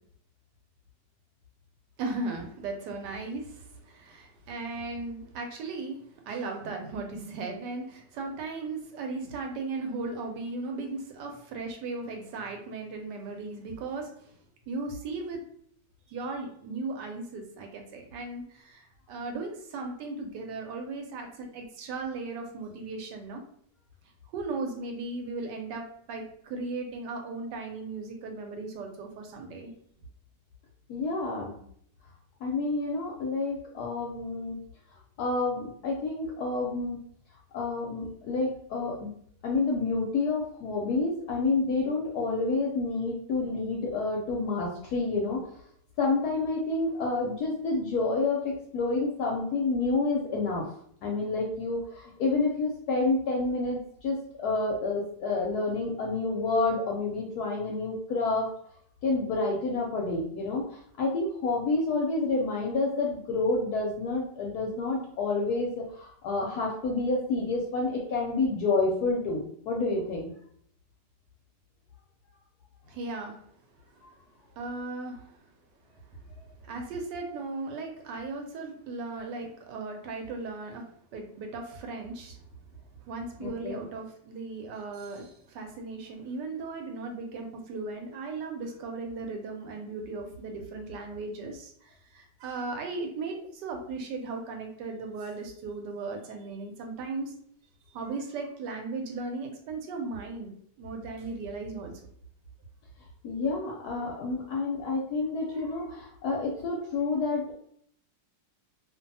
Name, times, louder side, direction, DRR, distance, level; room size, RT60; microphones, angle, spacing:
voice 1, 2.0-14.4 14.7-15.4 16.1-23.4 24.3-29.7 72.8-73.4 73.9-74.1 74.5-75.4 76.1-76.2 76.6-82.4 83.0-97.3 97.9-101.9, right 3 dB, 75° right, 3 dB, 1.2 m, -37 dB
voice 2, 30.9-31.6 32.4-34.6 35.2-37.0 37.5-39.1 39.4-45.5 46.0-50.7 51.0-58.5 59.0-70.3 83.4-83.8 103.2-107.5, left 3 dB, 70° left, -1 dB, 1.0 m, -29 dB
2.6 x 2.6 x 2.6 m, 0.65 s
omnidirectional pair, 2.0 m